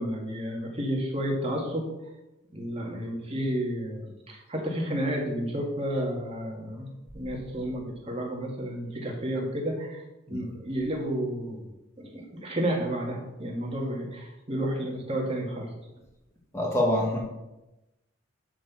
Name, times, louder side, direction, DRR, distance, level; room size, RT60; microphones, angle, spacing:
voice 1, 0.0-1.9 2.5-6.9 7.1-11.6 12.0-15.7, right 1 dB, 30° right, -1 dB, 1.9 m, -31 dB
voice 2, 16.5-17.2, left 1 dB, 15° left, -1 dB, 1.6 m, -25 dB
11.0 x 4.6 x 7.1 m, 0.98 s
head